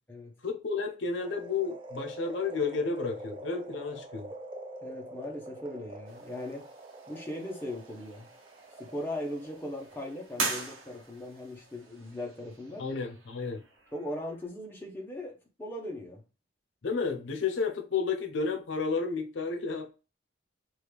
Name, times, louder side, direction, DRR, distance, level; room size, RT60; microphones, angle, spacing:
voice 1, 0.4-4.3 12.8-13.6 16.8-19.9, left 4 dB, 70° left, 0.6 m, -32 dB
sound 1, 1.2-11.5 11.9-12.0, right 2 dB, 25° right, 0.4 m, -46 dB
voice 2, 4.8-6.7 7.1-8.3 8.8-12.9 13.9-16.2, left 1 dB, 10° left, 0.7 m, -39 dB
sound 2, 6.0-14.5, right 3 dB, 90° right, 0.8 m, -42 dB
3.1 x 2.4 x 3.4 m
head